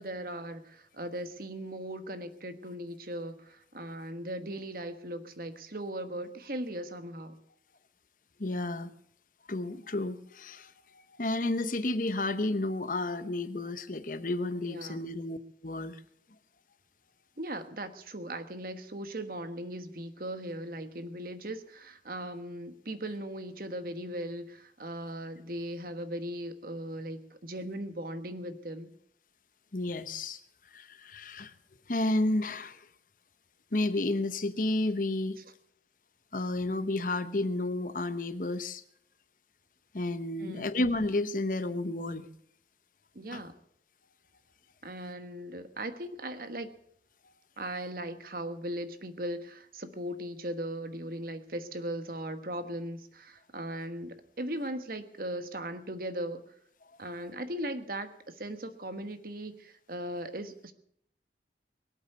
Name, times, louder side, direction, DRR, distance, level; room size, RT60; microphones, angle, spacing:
voice 1, 0.0-7.4 14.6-15.1 17.4-28.9 40.4-40.7 43.1-43.6 44.8-46.7 47.6-56.4 57.0-60.7, right 1 dB, 50° right, 9 dB, 1.4 m, -38 dB
voice 2, 8.4-8.9 9.5-10.7 11.2-15.4 15.6-16.0 29.7-30.4 30.7-31.5 31.9-32.9 33.7-35.4 36.3-38.8 39.9-42.3 43.3-43.4, left 2 dB, 45° left, 12 dB, 0.9 m, -31 dB
23.0 x 8.3 x 6.8 m, 0.69 s
head